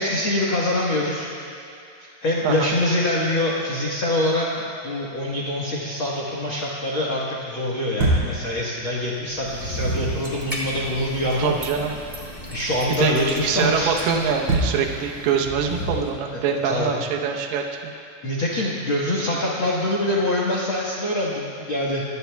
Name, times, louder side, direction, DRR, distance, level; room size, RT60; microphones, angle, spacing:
voice 1, 0.0-1.3 2.0-11.5 12.5-14.0 16.3-17.0 18.2-22.2, left 1 dB, 85° left, -4 dB, 1.1 m, -24 dB
voice 2, 2.4-2.8 11.4-12.0 13.0-17.6, right 6 dB, 75° right, 2 dB, 2.9 m, -24 dB
sound 1, 8.0-8.4 9.3-10.3 14.5-14.9 15.4-16.2, right 1 dB, 40° right, 2.6 m, -24 dB
sound 2, 9.4-15.5, equal, 15° right, 1.6 m, -36 dB
25.5 x 17.5 x 2.3 m, 2.5 s
omnidirectional pair, 4.8 m